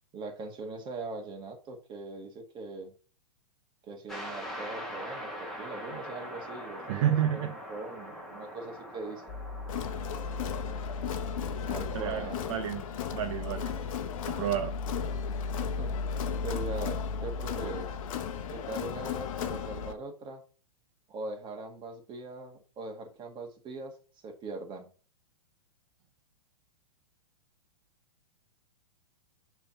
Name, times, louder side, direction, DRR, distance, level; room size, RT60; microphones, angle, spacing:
voice 1, 0.1-2.9 3.9-9.3 11.6-12.4 15.5-16.1 16.4-18.0 18.5-20.4 21.1-24.0 24.2-24.9, right 2 dB, 25° right, 3 dB, 1.9 m, -41 dB
sound 1, 4.1-16.6, equal, ahead, 2.0 m, -44 dB
voice 2, 6.9-7.5 11.5-11.6 11.9-12.8 13.1-13.7 14.3-14.7, right 10 dB, 50° right, 6 dB, 0.8 m, -30 dB
sound 2, 9.3-19.9, left 3 dB, 25° left, 1.3 m, -37 dB
Crowd, 9.7-19.9, left 9 dB, 60° left, 0.9 m, -37 dB
6.7 x 3.7 x 5.8 m, 0.37 s
hypercardioid pair, 125°, 19 cm